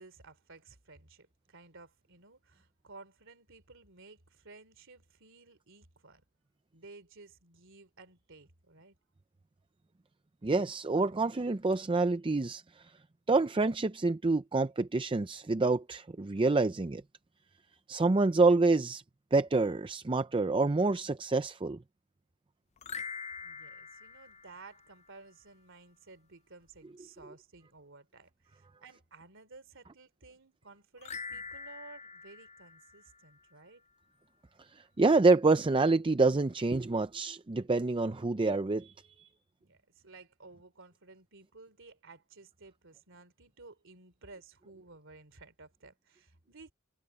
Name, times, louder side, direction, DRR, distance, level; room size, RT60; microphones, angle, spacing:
voice 1, 0.0-6.2 6.7-9.0 23.4-33.8 39.6-46.7, right 3 dB, 60° right, 3.1 m, -55 dB
voice 2, 10.4-12.9 13.3-17.0 17.9-19.0 19.3-21.8 34.6-39.3, right 3 dB, 25° right, 0.5 m, -27 dB
sound 1, 22.8-25.2 31.0-33.6, left 5 dB, 30° left, 0.4 m, -44 dB
head